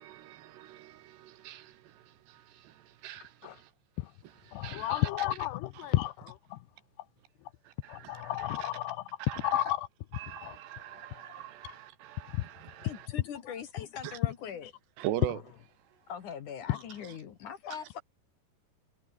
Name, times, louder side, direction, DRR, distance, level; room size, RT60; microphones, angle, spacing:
voice 1, 0.0-3.7 4.5-5.1 5.8-5.9 7.6-8.7 9.2-9.6 10.1-13.1 14.0-14.2 15.0-15.4 17.7-17.8, right 13 dB, 75° right, 3.4 m, -42 dB
voice 2, 4.5-6.6 7.9-9.9 10.4-10.6 10.9-11.4 12.3-12.5 13.8-13.9 16.7-16.8, left 16 dB, 75° left, 2.8 m, -32 dB
voice 3, 12.8-14.7 16.1-18.0, left 8 dB, 55° left, 2.7 m, -41 dB
omnidirectional pair, 5.1 m